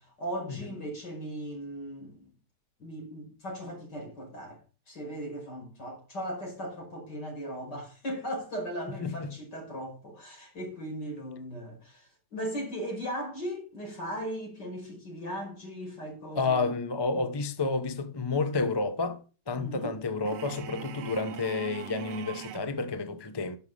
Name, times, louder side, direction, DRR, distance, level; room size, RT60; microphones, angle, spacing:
voice 1, 0.0-2.3 2.8-4.6 4.9-16.7 17.1-17.3 19.5-20.0, equal, 70° left, 6.1 m, -38 dB
voice 2, 9.0-9.3 16.3-23.6, left 3 dB, 20° left, 0.6 m, -30 dB
sound 1, 20.3-22.7, right 11 dB, 80° right, 1.3 m, -41 dB
11.5 x 6.4 x 6.2 m
omnidirectional pair, 1.9 m